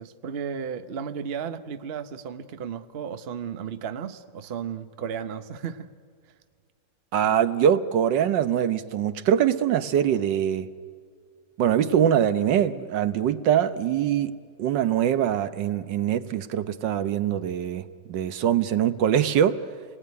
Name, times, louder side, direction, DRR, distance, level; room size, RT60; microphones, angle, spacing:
voice 1, 0.0-5.9, right 7 dB, 45° right, 10 dB, 0.9 m, -34 dB
voice 2, 7.1-10.7 11.6-14.3 14.6-19.7, right 9 dB, 80° right, 12 dB, 1.6 m, -23 dB
27.5 x 19.5 x 9.6 m, 2.1 s
omnidirectional pair, 1.9 m